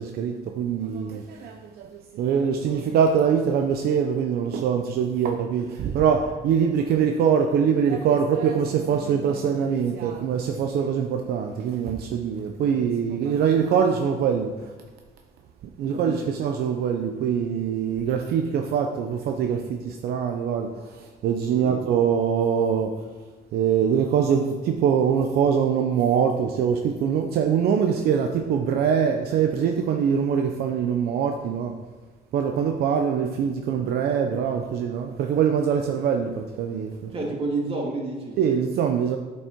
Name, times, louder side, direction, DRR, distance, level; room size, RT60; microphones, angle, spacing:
voice 1, 0.0-14.7 15.8-22.9 23.5-31.7 32.3-37.1 38.4-39.2, right 7 dB, 70° right, 4 dB, 0.7 m, -23 dB
voice 2, 15.9-16.3 21.5-21.8 37.1-38.4, right 2 dB, 35° right, -2 dB, 2.3 m, -30 dB
8.6 x 5.4 x 4.6 m, 1.3 s
cardioid pair, 110°, 17 cm